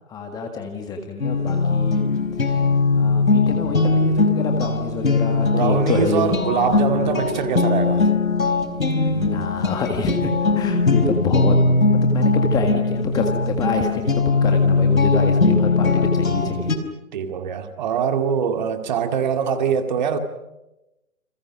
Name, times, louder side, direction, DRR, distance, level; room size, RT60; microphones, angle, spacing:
voice 1, 0.1-2.0 2.4-2.7 2.9-6.3 6.6-6.7 9.1-11.6 11.9-16.7, left 4 dB, 10° left, 1.7 m, -27 dB
sound 1, 1.2-16.8, left 3 dB, 75° left, 4.5 m, -20 dB
voice 2, 5.4-8.1 17.1-20.2, right 7 dB, 30° right, 2.2 m, -23 dB
29.5 x 27.5 x 6.2 m
figure-of-eight pair, 145°, 42 cm